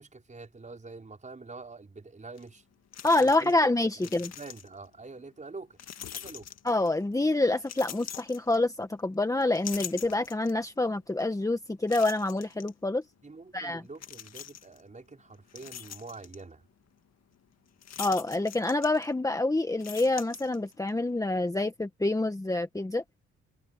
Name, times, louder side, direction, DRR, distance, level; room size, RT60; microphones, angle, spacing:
voice 1, 0.0-2.6 3.2-3.7 4.0-5.8 6.1-6.5 13.2-16.6, right 3 dB, 25° right, 5.3 m, -46 dB
sound 1, 2.4-2.5 2.9-3.7 3.9-4.9 5.8-7.0 7.6-9.0 9.4-10.7 11.2-11.3 11.9-12.7 14.0-14.8 15.3-16.4 17.8-19.3 19.7-20.9, left 9 dB, 60° left, 1.8 m, -43 dB
voice 2, 3.0-4.3 6.6-13.0 13.5-13.8 18.0-23.0, left 2 dB, 10° left, 1.6 m, -27 dB
cardioid pair, 90°, 30 cm